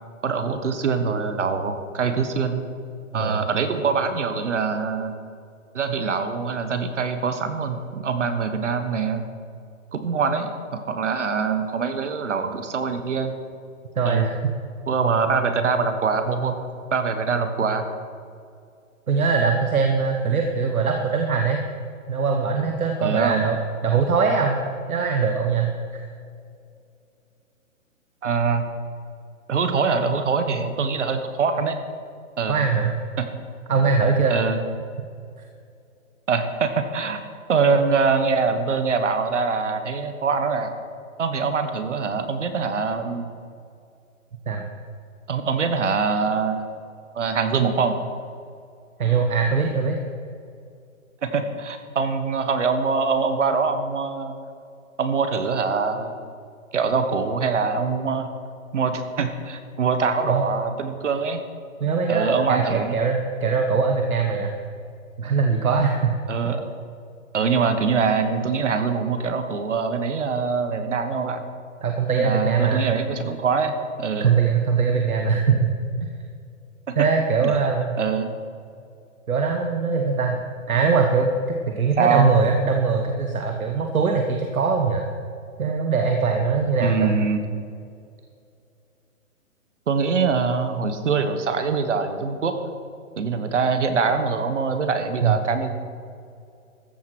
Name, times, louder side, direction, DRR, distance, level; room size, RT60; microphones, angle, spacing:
voice 1, 0.2-2.6 3.1-5.1 5.7-9.2 9.9-13.3 14.0-14.3 14.9-16.6 16.9-17.8 23.0-23.5 28.2-28.6 29.5-31.8 32.4-32.6 33.2-33.3 34.3-34.6 36.3-37.2 37.5-40.7 41.2-43.3 45.3-46.8 47.1-48.0 51.2-54.3 55.0-56.2 56.7-58.3 58.7-61.4 62.1-63.0 66.3-66.7 67.3-71.4 72.1-74.3 76.9-77.1 77.4-77.6 78.0-78.3 82.0-82.4 86.8-87.4 89.9-92.6 93.2-95.7, right 5 dB, 60° right, 8 dB, 1.4 m, -23 dB
voice 2, 13.9-14.5 19.1-21.6 22.1-23.6 23.8-24.6 24.9-26.0 32.5-32.9 33.7-34.4 44.5-44.6 49.0-50.0 60.3-60.5 61.8-64.5 65.2-66.2 71.8-72.9 74.2-75.7 76.0-76.1 77.0-78.0 79.3-80.4 80.7-81.3 81.7-85.1 85.6-87.2 95.2-95.4, right 5 dB, 90° right, 3 dB, 1.5 m, -21 dB
14.5 x 7.7 x 6.2 m, 2.4 s
hypercardioid pair, 175°, 41 cm